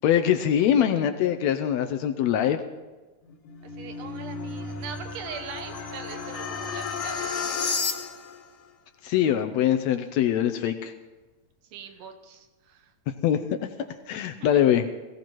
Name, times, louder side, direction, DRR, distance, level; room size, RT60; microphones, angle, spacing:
voice 1, 0.0-2.6 9.0-10.9 13.2-13.4 14.1-14.9, left 10 dB, 80° left, 8 dB, 1.6 m, -23 dB
sound 1, 3.2-8.4, left 5 dB, 65° left, 2.6 m, -32 dB
voice 2, 3.7-7.8 11.7-12.9 14.4-14.6, right 7 dB, 85° right, 6 dB, 2.7 m, -42 dB
21.0 x 16.0 x 3.1 m, 1.2 s
omnidirectional pair, 3.7 m